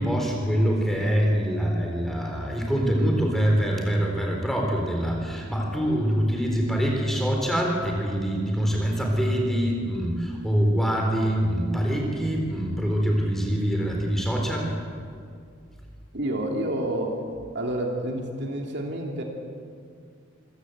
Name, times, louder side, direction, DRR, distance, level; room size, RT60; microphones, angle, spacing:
voice 1, 0.0-14.7, equal, ahead, 0 dB, 3.7 m, -24 dB
voice 2, 16.1-17.2 17.5-19.2, right 1 dB, 55° right, 1 dB, 2.9 m, -29 dB
26.0 x 16.0 x 8.0 m, 2.2 s
head